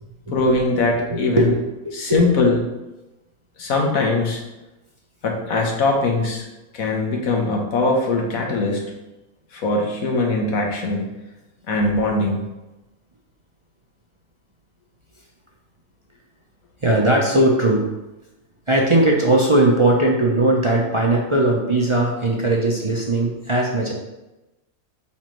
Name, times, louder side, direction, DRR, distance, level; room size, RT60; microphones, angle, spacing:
voice 1, 0.3-1.5 1.9-2.6 3.6-4.4 5.2-6.4 6.7-8.8 9.5-11.0 11.7-12.4, left 2 dB, 90° left, 0 dB, 1.6 m, -21 dB
voice 2, 1.1-2.2 16.8-17.8 18.7-23.9, right 1 dB, 30° right, -2 dB, 0.7 m, -19 dB
8.8 x 4.1 x 3.1 m, 1.0 s
omnidirectional pair, 1.4 m